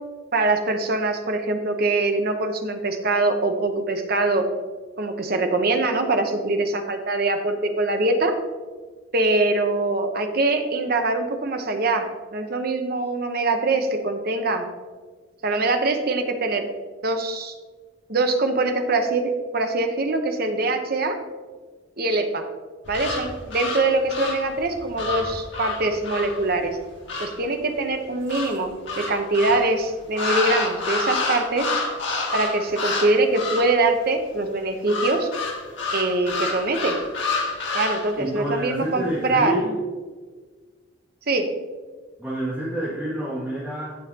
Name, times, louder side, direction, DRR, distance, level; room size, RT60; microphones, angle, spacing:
voice 1, 0.3-4.5 5.0-8.3 9.1-14.6 15.4-16.7 17.0-17.5 18.1-19.2 19.5-21.2 22.0-22.4 22.9-26.8 27.2-31.7 32.3-35.3 35.9-36.9 37.7-39.5 41.3-41.5, right 2 dB, 50° right, 5 dB, 0.9 m, -23 dB
sound 1, 22.8-27.4 28.3-29.7 30.1-33.1 33.3-33.8 34.9-38.1, left 3 dB, 65° left, 1.7 m, -28 dB
voice 2, 38.2-39.8 42.2-44.0, equal, 5° right, -10 dB, 2.1 m, -28 dB
16.0 x 5.6 x 2.9 m, 1.4 s
head